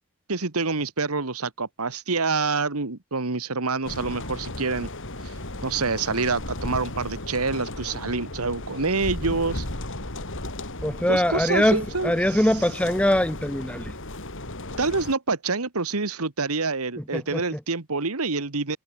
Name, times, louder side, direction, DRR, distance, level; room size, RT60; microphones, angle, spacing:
voice 1, 0.3-4.9 5.2-5.3 5.6-9.6 11.1-12.5 14.8-18.8, right 4 dB, 75° right, 1.7 m, -27 dB
sound 1, 3.8-15.1, left 1 dB, 60° left, 5.6 m, -35 dB
voice 2, 10.8-13.9 17.1-17.4, left 1 dB, 5° left, 1.3 m, -22 dB
head